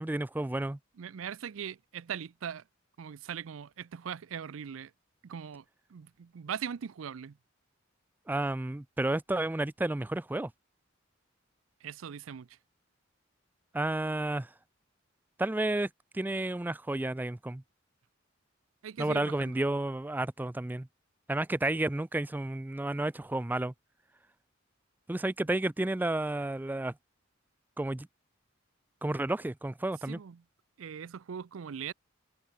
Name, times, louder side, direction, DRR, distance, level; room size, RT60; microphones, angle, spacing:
voice 1, 0.0-0.8 8.3-10.5 13.7-14.5 15.4-17.6 19.0-20.9 21.3-23.7 25.1-26.9 27.8-28.1 29.0-30.2, right 2 dB, 10° right, 0.3 m, -31 dB
voice 2, 1.0-2.6 3.0-4.9 5.2-5.6 5.9-7.4 11.8-12.6 18.8-19.5 30.1-30.4 30.8-31.9, right 8 dB, 75° right, 0.5 m, -40 dB
head